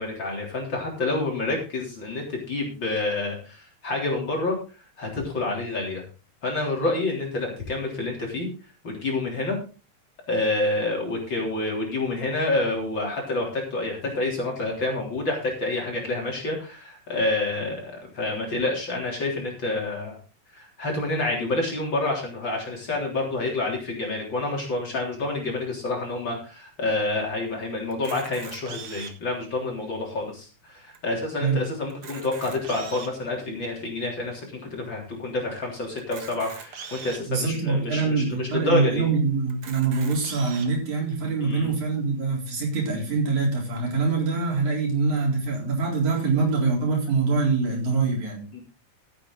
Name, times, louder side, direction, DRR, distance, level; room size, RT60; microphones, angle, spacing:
voice 1, 0.0-4.6 5.0-6.0 6.4-8.5 8.8-9.6 10.3-20.2 20.5-39.1 41.4-41.7 48.5-48.6, left 2 dB, 35° left, -1 dB, 4.1 m, -28 dB
Camera, 27.9-29.3 30.0-30.1 30.3-30.4 30.9-31.0 31.8-33.2 33.9-34.0 36.0-37.2 37.9-38.0 38.3-38.4 39.5-40.7, right 6 dB, 50° right, 2.3 m, -41 dB
voice 2, 37.3-48.5, right 4 dB, 65° right, -1 dB, 5.5 m, -24 dB
15.0 x 8.9 x 3.9 m, 0.34 s
omnidirectional pair, 3.6 m